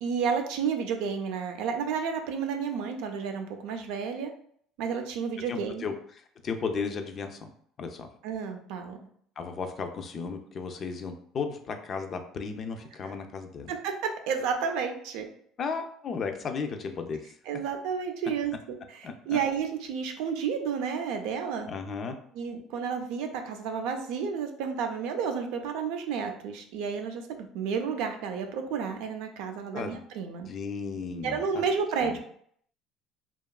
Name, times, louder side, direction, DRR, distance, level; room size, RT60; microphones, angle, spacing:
voice 1, 0.0-4.3 4.8-5.9 8.2-9.0 13.0-13.1 13.7-15.3 17.5-21.7 22.3-30.5 31.2-32.2, right 6 dB, 80° right, 5 dB, 0.4 m, -31 dB
voice 2, 5.5-5.9 6.4-7.5 7.8-8.1 9.4-13.7 15.6-17.2 19.0-19.1 21.7-22.2 29.7-30.0 30.5-31.6 32.0-32.2, left 5 dB, 40° left, 6 dB, 0.3 m, -34 dB
2.8 x 2.3 x 2.2 m, 0.63 s
cardioid pair, 125°, 0 cm